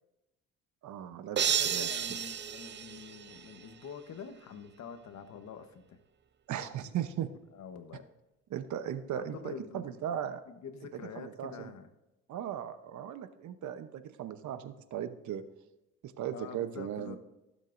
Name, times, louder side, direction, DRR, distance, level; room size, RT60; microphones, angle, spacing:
voice 1, 0.8-2.2 6.5-7.3 8.5-10.4 11.0-11.7 12.3-15.4 16.0-17.2, right 10 dB, 70° right, 11 dB, 0.9 m, -38 dB
sound 1, 1.4-3.7, right 8 dB, 35° right, 0.6 m, -32 dB
voice 2, 1.6-6.0 7.5-8.1 9.1-10.0 10.5-11.9 16.3-17.2, left 6 dB, 65° left, 9 dB, 1.1 m, -46 dB
15.5 x 7.4 x 2.6 m, 0.97 s
cardioid pair, 90°, 30 cm